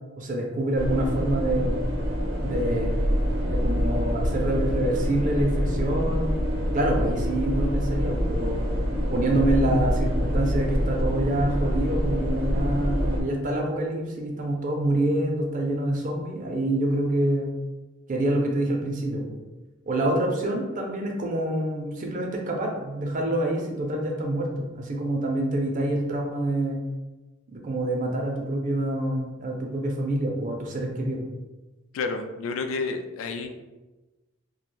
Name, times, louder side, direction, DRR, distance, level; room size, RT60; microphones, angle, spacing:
voice 1, 0.2-1.8 2.4-3.0 3.5-6.3 6.7-8.7 9.1-17.5 18.1-19.4 19.9-26.8 27.5-31.2, right 1 dB, 40° right, 1 dB, 0.4 m, -26 dB
sound 1, 0.7-13.2, equal, 90° right, 0.5 m, -26 dB
voice 2, 31.9-33.5, left 4 dB, 80° left, 6 dB, 0.3 m, -30 dB
2.3 x 2.1 x 3.1 m, 1.1 s
head